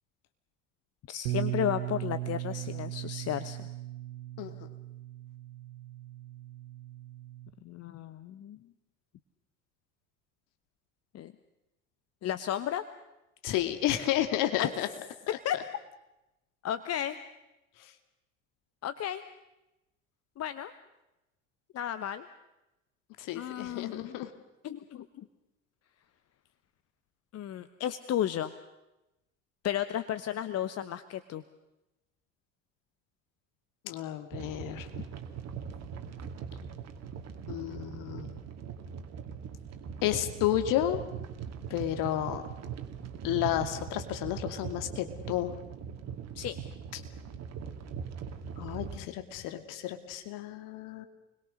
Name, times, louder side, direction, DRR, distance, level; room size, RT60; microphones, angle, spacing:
voice 1, 1.1-3.6 7.6-8.6 11.1-11.3 12.2-12.8 14.6-14.7 15.4-15.6 16.6-17.2 18.8-19.2 20.4-20.7 21.7-22.3 23.3-24.2 24.6-25.2 27.3-28.5 29.6-31.4 46.3-46.6, left 11 dB, 40° left, 12 dB, 1.2 m, -33 dB
Bass guitar, 1.3-7.5, right 15 dB, 65° right, 1.3 m, -38 dB
voice 2, 13.4-14.9 23.2-24.3 33.8-34.9 37.5-38.4 40.0-41.0 41.7-42.4 43.2-45.5 48.6-51.1, left 12 dB, 55° left, 8 dB, 2.6 m, -31 dB
sound 1, 34.3-49.0, right 7 dB, 45° right, 2.4 m, -41 dB
29.5 x 21.5 x 6.5 m, 0.95 s
figure-of-eight pair, 65°, 38 cm